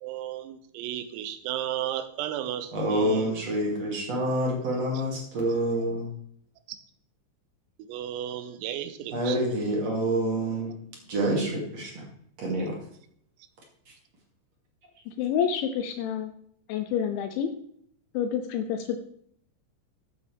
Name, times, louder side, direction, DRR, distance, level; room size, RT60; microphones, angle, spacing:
voice 1, 0.0-3.4 6.7-6.8 7.9-9.4, right 11 dB, 90° right, 10 dB, 3.6 m, -34 dB
voice 2, 2.7-6.1 9.1-10.7 11.1-12.0 12.4-12.8, right 1 dB, 40° right, -2 dB, 2.8 m, -27 dB
voice 3, 15.2-16.3 16.7-17.5 18.1-19.0, left 8 dB, 80° left, 8 dB, 2.8 m, -28 dB
14.0 x 8.5 x 3.5 m, 0.67 s
omnidirectional pair, 5.9 m